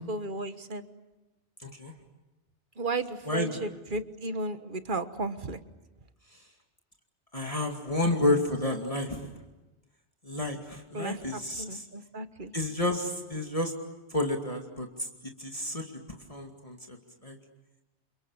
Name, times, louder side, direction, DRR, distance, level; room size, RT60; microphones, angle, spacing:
voice 1, 0.1-0.8 2.8-5.6 10.9-12.5, right 2 dB, 50° right, 10 dB, 1.5 m, -34 dB
voice 2, 1.6-1.9 3.3-3.6 6.3-6.5 7.3-9.3 10.2-11.8 12.5-13.7 14.1-17.0 17.2-17.4, left 1 dB, 30° left, 2 dB, 2.4 m, -31 dB
28.5 x 28.5 x 7.3 m, 1.1 s
omnidirectional pair, 1.1 m